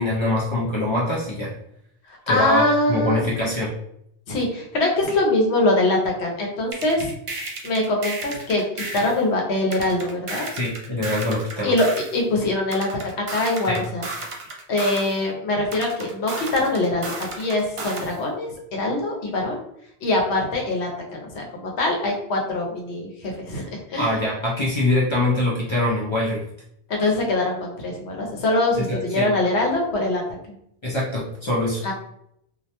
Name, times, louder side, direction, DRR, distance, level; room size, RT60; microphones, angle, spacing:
voice 1, 0.0-1.6 2.3-3.7 10.5-11.7 13.7-13.8 24.0-26.5 28.8-29.3 30.8-31.8, left 1 dB, 50° left, -5 dB, 0.3 m, -24 dB
voice 2, 2.1-3.5 4.3-7.1 7.4-10.5 11.6-11.9 12.1-14.1 14.7-19.6 20.0-24.2 26.9-30.2 31.8-31.9, left 2 dB, 80° left, 1 dB, 0.9 m, -23 dB
sound 1, 6.7-9.2 9.7-12.2 12.7-15.2 15.7-18.2, right 2 dB, 60° right, 0.3 m, -33 dB
2.3 x 2.1 x 2.8 m, 0.74 s
omnidirectional pair, 1.1 m